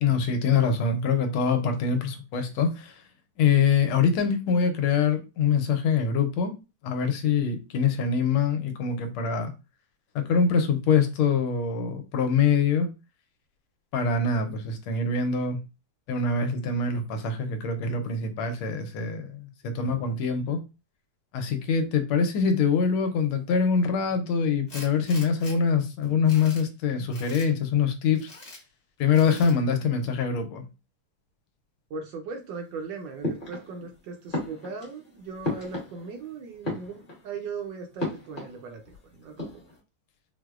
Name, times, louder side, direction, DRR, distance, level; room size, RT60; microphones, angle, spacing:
voice 1, 0.0-2.9 3.4-6.6 6.8-9.5 10.1-12.9 13.9-15.6 16.1-20.6 21.3-28.3 29.0-30.7, left 5 dB, 85° left, 1.5 m, -24 dB
Tools, 24.7-25.6 26.0-26.7 27.1-27.5 28.1-28.6 29.1-29.6, left 2 dB, 55° left, 0.6 m, -44 dB
voice 2, 31.9-39.5, right 4 dB, 75° right, 1.1 m, -38 dB
sound 1, 33.2-33.9 34.3-36.3 36.5-37.4 38.0-39.0 39.2-39.8, left 1 dB, 30° left, 1.1 m, -34 dB
4.6 x 2.0 x 2.3 m
omnidirectional pair, 2.3 m